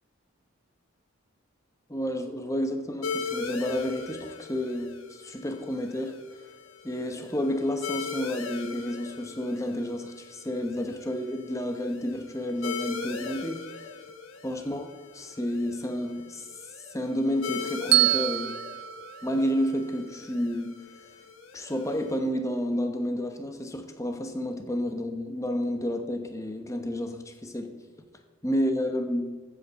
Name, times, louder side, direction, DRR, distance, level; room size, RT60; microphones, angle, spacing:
voice 1, 1.9-6.2 6.8-13.9 14.4-16.6 16.9-18.6 19.2-21.1 21.5-27.8 28.4-29.4, equal, 15° left, 1.0 m, -30 dB
sound 1, 3.0-22.2, left 5 dB, 80° left, 1.2 m, -40 dB
Bell, 17.9-20.1, right 14 dB, 50° right, 0.4 m, -26 dB
14.5 x 7.8 x 4.1 m
head